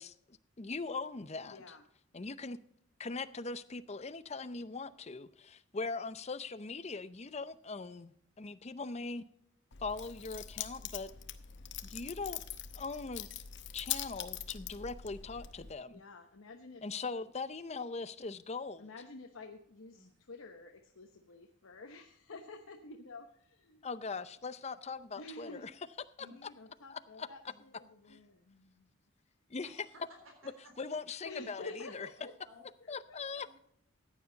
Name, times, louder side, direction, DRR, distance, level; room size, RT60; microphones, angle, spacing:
voice 1, 0.0-1.6 2.1-2.6 3.0-9.2 9.8-11.1 11.8-12.4 12.7-13.3 13.7-16.0 16.8-18.9 23.8-25.5 26.2-26.5 26.9-27.3 28.1-28.2 29.5-29.7 30.8-31.6 31.9-32.1 32.9-33.6, left 4 dB, 30° left, 14 dB, 0.6 m, -41 dB
voice 2, 1.5-1.8 15.9-16.8 18.8-23.9 25.1-25.7 26.3-28.9 31.2-32.3 32.8-33.4, left 3 dB, 75° left, 3 dB, 1.0 m, -50 dB
Keys jangling, 9.7-15.7, left 10 dB, 60° left, 0.8 m, -43 dB
voice 3, 29.6-30.7 31.4-31.5 32.4-32.6 33.4-33.6, equal, 70° right, 2 dB, 3.4 m, -57 dB
15.0 x 9.5 x 3.9 m, 0.70 s
head